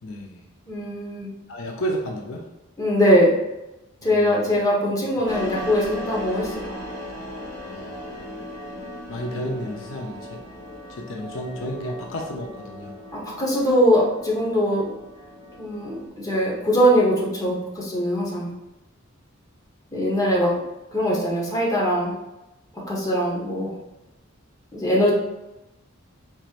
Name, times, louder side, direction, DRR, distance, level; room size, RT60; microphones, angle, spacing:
voice 1, 0.0-0.5 1.5-2.5 4.0-4.6 5.2-5.3 7.6-8.2 9.1-10.4 10.9-12.9 20.0-20.2, equal, 70° left, 0 dB, 0.7 m, -32 dB
voice 2, 0.7-1.3 2.8-3.3 4.0-6.5 9.3-9.4 13.1-14.9 15.6-18.5 19.9-20.5 20.9-22.1 22.9-23.7 24.7-25.1, equal, 20° left, -5 dB, 1.2 m, -21 dB
sound 1, 5.3-16.1, left 1 dB, 50° left, 1.4 m, -37 dB
4.6 x 4.4 x 2.5 m, 0.99 s
head